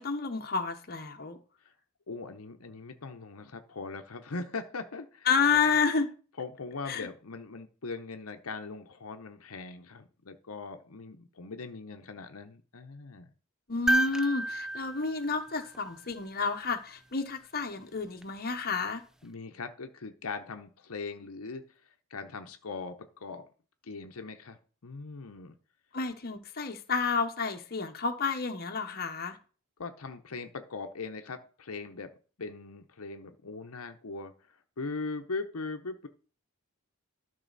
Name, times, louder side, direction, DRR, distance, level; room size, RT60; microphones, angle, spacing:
voice 1, 0.0-1.4 5.3-6.1 6.9-7.1 13.7-19.0 25.9-29.4, left 5 dB, 45° left, 5 dB, 1.0 m, -30 dB
voice 2, 2.1-5.3 6.4-13.3 19.2-23.5 23.8-24.6 24.8-25.5 29.8-32.1 32.4-36.1, left 4 dB, 70° left, 6 dB, 0.9 m, -40 dB
sound 1, 13.9-16.2 18.2-18.3, right 1 dB, 5° right, 0.5 m, -31 dB
12.5 x 5.5 x 4.1 m, 0.37 s
head